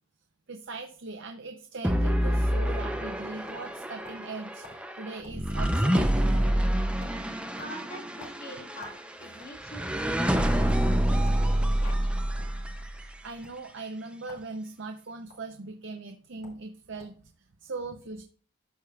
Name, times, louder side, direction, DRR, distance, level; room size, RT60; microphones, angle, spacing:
voice 1, 0.5-6.7 13.0-17.3 17.6-18.2, right 3 dB, 55° right, 5 dB, 0.6 m, -40 dB
sound 1, 1.8-13.1, equal, 5° right, 0.5 m, -27 dB
sound 2, 3.5-4.3 4.6-4.8 5.2-5.4 5.7-6.2 6.4-6.7 7.0-7.2 7.6-9.0 9.3-10.2 10.7-10.8 11.2-11.4 11.8-12.6 13.3-13.5 14.2-14.5 14.8-15.4 16.1-16.2 16.4-16.6 17.0-17.2, left 3 dB, 65° left, 2.6 m, -50 dB
voice 2, 7.5-12.4, equal, 45° left, 1 dB, 2.1 m, -45 dB
13.0 x 4.9 x 2.3 m, 0.41 s
head